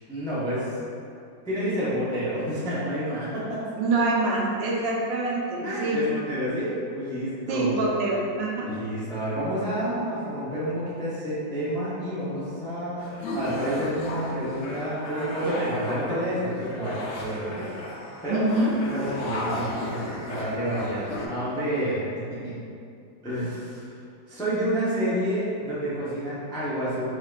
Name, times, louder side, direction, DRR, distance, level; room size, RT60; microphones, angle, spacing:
voice 1, 0.1-0.7 1.4-3.6 5.6-7.9 8.6-13.0 13.3-17.7 18.2-18.4 18.9-22.5 23.2-23.8 24.3-27.0, equal, 5° left, -10 dB, 0.4 m, -29 dB
voice 2, 3.8-6.0 7.5-8.7 18.3-18.7, right 2 dB, 90° right, -3 dB, 1.5 m, -25 dB
sound 1, 13.0-21.3, left 2 dB, 70° left, 0.7 m, -35 dB
4.9 x 3.4 x 2.4 m, 2.5 s
omnidirectional pair, 2.0 m